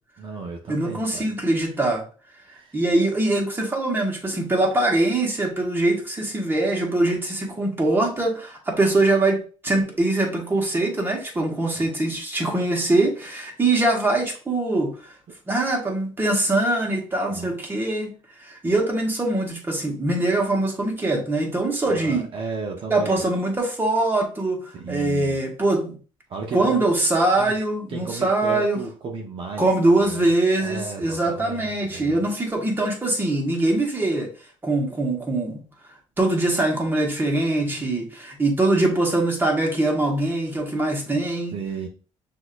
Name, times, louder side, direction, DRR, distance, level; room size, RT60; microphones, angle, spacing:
voice 1, 0.2-1.3 2.5-2.8 11.7-11.9 17.3-17.5 18.6-18.7 21.8-23.3 24.7-25.4 26.3-26.9 27.4-27.5 27.9-30.3 30.6-32.2 41.5-41.9, right 4 dB, 50° right, 0 dB, 0.8 m, -34 dB
voice 2, 0.7-2.0 2.7-15.0 15.5-18.1 18.4-22.2 22.9-26.0 26.5-28.8 29.6-34.3 34.6-35.6 36.2-41.6, right 2 dB, 20° right, 0 dB, 1.4 m, -23 dB
6.2 x 2.8 x 2.5 m, 0.38 s
cardioid pair, 95°, 12 cm